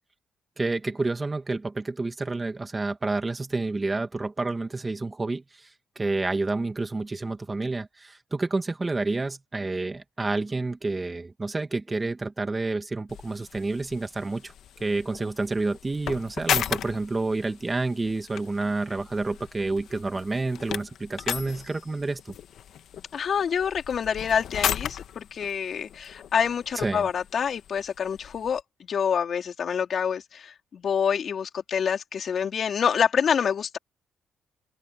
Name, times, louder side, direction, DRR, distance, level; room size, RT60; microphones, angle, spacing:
voice 1, 0.6-5.7 6.0-14.5 14.8-22.3 26.7-27.1, right 3 dB, 20° right, 2.1 m, -29 dB
sound 1, 13.1-28.6, left 10 dB, 70° left, 1.6 m, -36 dB
voice 2, 23.1-33.8, left 7 dB, 55° left, 4.4 m, -27 dB
open air
cardioid pair, 85°, 0 cm